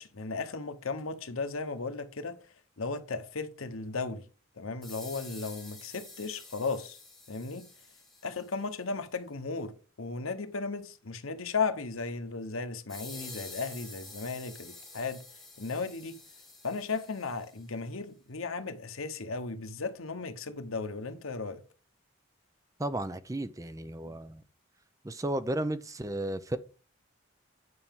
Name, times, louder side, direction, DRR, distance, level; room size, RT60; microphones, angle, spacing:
voice 1, 0.0-2.4 2.8-4.3 4.6-7.0 7.3-7.7 8.2-15.2 15.6-16.2 16.6-21.6, left 4 dB, 85° left, 1.0 m, -35 dB
sound 1, 4.8-8.6 12.9-17.6, left 3 dB, ahead, 2.8 m, -48 dB
voice 2, 22.8-24.4 25.0-26.6, right 1 dB, 15° right, 0.5 m, -33 dB
9.6 x 5.8 x 3.6 m
head